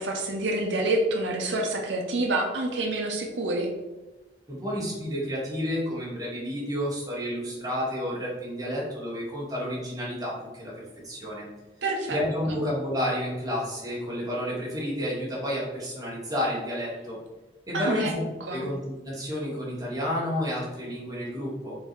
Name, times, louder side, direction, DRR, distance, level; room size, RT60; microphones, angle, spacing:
voice 1, 0.0-3.7 11.8-12.2 17.7-18.1 18.5-18.7, right 2 dB, 85° right, 1 dB, 0.6 m, -27 dB
voice 2, 4.5-11.5 12.1-17.2 17.7-18.2 18.5-21.8, equal, 20° right, -6 dB, 1.4 m, -30 dB
3.8 x 2.7 x 4.4 m, 1.1 s
head